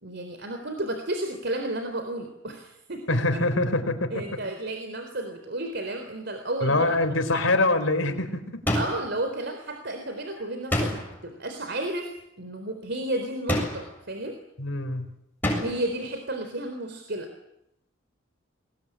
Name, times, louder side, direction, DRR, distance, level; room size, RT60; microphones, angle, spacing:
voice 1, 0.0-3.0 3.3-3.4 4.1-7.0 7.3-7.4 8.7-12.1 12.4-14.4 15.6-17.3, right 1 dB, 55° right, 6 dB, 4.0 m, -32 dB
voice 2, 3.1-4.2 6.6-8.6 14.6-15.1, left 2 dB, 80° left, 8 dB, 4.3 m, -24 dB
sound 1, 8.7-9.2 10.7-11.3 13.5-14.0 15.4-15.9, left 1 dB, 10° left, 7.4 m, -27 dB
29.5 x 21.5 x 9.0 m, 0.80 s
head